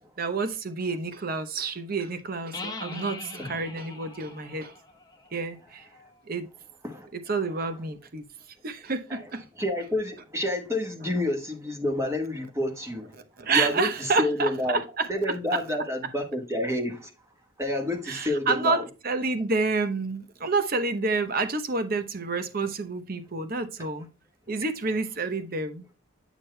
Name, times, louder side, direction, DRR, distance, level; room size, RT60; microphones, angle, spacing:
voice 1, 0.0-4.7 5.3-5.9 6.3-6.5 7.1-8.2 8.6-9.4 13.4-15.1 18.1-24.1 24.5-25.8, right 3 dB, 45° right, 0.8 m, -29 dB
sound 1, 2.5-6.2, left 3 dB, 15° left, 1.0 m, -42 dB
voice 2, 9.6-13.2 13.5-14.8 15.1-17.1 17.6-18.9, left 1 dB, 15° right, 1.4 m, -29 dB
9.1 x 6.0 x 2.2 m
head